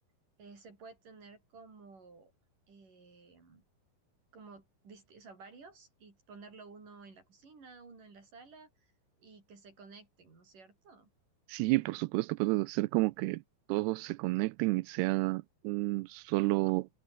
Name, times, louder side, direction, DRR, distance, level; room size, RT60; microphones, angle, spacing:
voice 1, 0.4-2.3 2.7-3.6 4.3-8.9 9.2-11.1, right 4 dB, 50° right, 7.8 m, -54 dB
voice 2, 11.5-13.4 13.7-16.9, right 22 dB, 85° right, 2.6 m, -30 dB
omnidirectional pair, 4.8 m